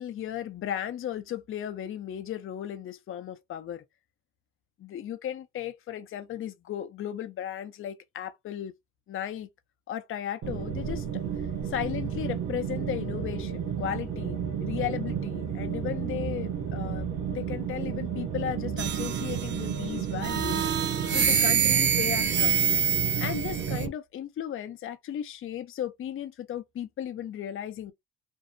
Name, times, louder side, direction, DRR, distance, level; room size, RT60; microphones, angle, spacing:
voice 1, 0.0-3.8 4.8-8.7 9.1-9.5 9.9-20.7 21.1-22.6 23.2-27.9, left 10 dB, 45° left, 0.5 m, -35 dB
sound 1, 10.4-23.9, right 8 dB, 75° right, 0.7 m, -32 dB
sound 2, 18.8-19.7 20.2-23.9, right 8 dB, 40° right, 0.4 m, -26 dB
2.6 x 2.0 x 2.5 m
cardioid pair, 90°, 30 cm